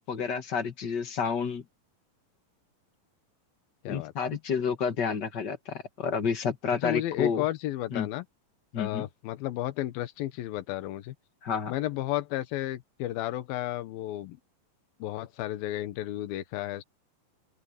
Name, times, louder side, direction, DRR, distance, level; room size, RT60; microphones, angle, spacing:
voice 1, 0.0-1.6 3.9-7.4 7.9-8.1 8.7-9.1 11.4-11.7, left 6 dB, 45° left, 1.4 m, -30 dB
voice 2, 6.8-8.3 8.8-11.1 11.7-14.4 15.0-16.8, left 14 dB, 85° left, 2.9 m, -32 dB
omnidirectional pair, 4.1 m